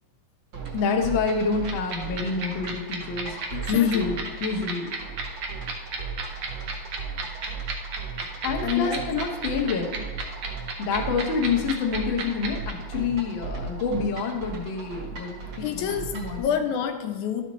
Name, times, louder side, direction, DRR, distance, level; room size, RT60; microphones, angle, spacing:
sound 1, 0.5-16.4, right 4 dB, 50° right, 1.5 m, -36 dB
voice 1, 0.7-3.4 3.7-4.9 8.4-10.0 10.8-16.6, left 5 dB, 65° left, 0 dB, 1.2 m, -27 dB
sound 2, 1.7-12.7, right 5 dB, 75° right, 1.0 m, -31 dB
voice 2, 3.5-4.1 8.6-9.1 15.6-17.4, left 8 dB, 80° left, 6 dB, 2.0 m, -28 dB
12.5 x 5.7 x 3.1 m, 1.2 s
omnidirectional pair, 3.5 m